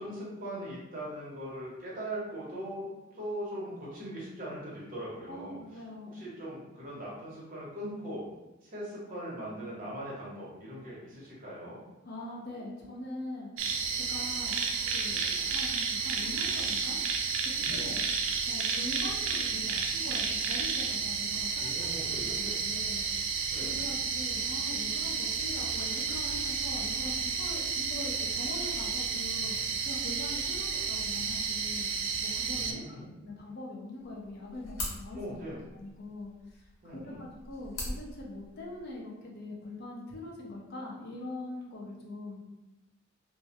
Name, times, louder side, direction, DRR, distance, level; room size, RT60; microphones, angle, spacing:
voice 1, 0.0-8.3 8.6-11.8 17.6-17.9 21.6-22.6 23.5-23.7 32.4-33.1 35.1-35.6 36.8-37.3, equal, 45° right, -6 dB, 0.8 m, -40 dB
voice 2, 5.3-6.3 12.0-17.0 17.4-18.1 18.5-21.5 22.0-23.0 23.6-31.9 32.2-32.8 33.2-35.2 35.7-36.3 36.9-42.4, left 2 dB, 50° left, -4 dB, 0.5 m, -42 dB
sound 1, 13.6-32.7, right 5 dB, 75° right, 0.3 m, -31 dB
sound 2, 34.0-39.0, left 1 dB, 90° left, 0.8 m, -43 dB
2.2 x 2.1 x 2.7 m, 0.99 s
head